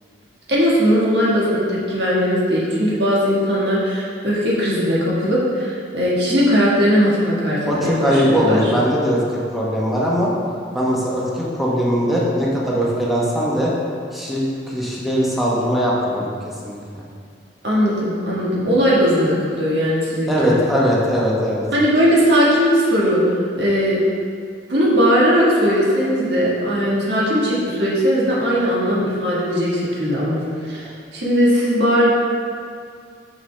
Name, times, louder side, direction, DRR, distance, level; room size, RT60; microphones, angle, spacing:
voice 1, 0.5-8.7 17.6-20.5 21.7-24.0 24.7-30.4 30.7-32.1, equal, 65° right, -6 dB, 1.6 m, -18 dB
voice 2, 7.7-9.2 9.5-10.3 10.7-13.7 14.1-16.3 16.6-17.0 20.3-21.7, equal, ahead, -6 dB, 1.0 m, -20 dB
6.8 x 5.3 x 3.3 m, 2.2 s
head